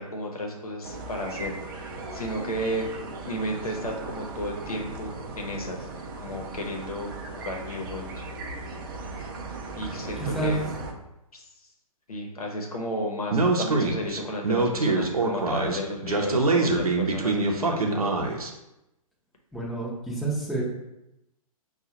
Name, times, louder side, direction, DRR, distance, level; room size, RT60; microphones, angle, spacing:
voice 1, 0.0-2.9 3.2-5.9 6.2-8.2 9.7-10.6 11.3-11.4 12.1-18.2, equal, 75° left, 1 dB, 0.9 m, -33 dB
sound 1, 0.8-10.9, right 2 dB, 35° right, 0.5 m, -37 dB
voice 2, 10.2-10.5 19.5-20.6, right 2 dB, ahead, -6 dB, 0.8 m, -29 dB
Speech, 13.3-18.5, right 3 dB, 75° right, 0.7 m, -24 dB
5.4 x 2.3 x 2.8 m, 0.91 s
figure-of-eight pair, 120°, 19 cm